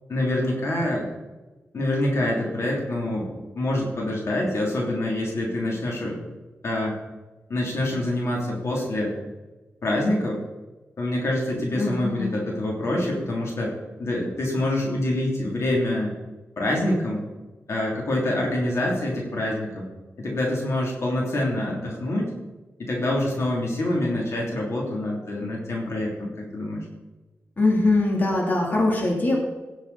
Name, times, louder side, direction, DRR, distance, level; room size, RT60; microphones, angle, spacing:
voice 1, 0.1-1.1 1.7-6.2 6.6-6.9 7.5-9.2 9.8-10.4 11.0-13.7 14.0-16.1 16.6-17.2 17.7-19.9 20.2-22.3 22.8-26.8, left 1 dB, 65° left, -2 dB, 2.9 m, -26 dB
voice 2, 11.8-12.4 27.6-29.4, left 2 dB, 35° left, -2 dB, 3.0 m, -22 dB
17.0 x 7.2 x 4.1 m, 1.2 s
wide cardioid pair, 120°, 5 cm